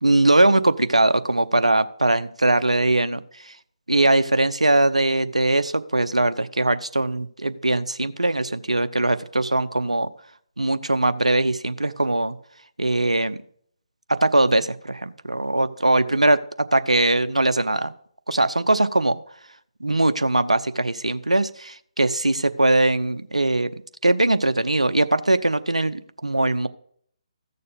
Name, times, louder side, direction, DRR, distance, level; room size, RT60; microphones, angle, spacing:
voice 1, 0.0-3.2 3.9-10.1 10.6-12.4 12.8-13.4 14.1-17.9 18.3-19.2 19.8-23.7 24.0-26.7, right 2 dB, 85° right, 12 dB, 0.7 m, -21 dB
14.5 x 6.8 x 5.2 m, 0.63 s
figure-of-eight pair, 145°, 3 cm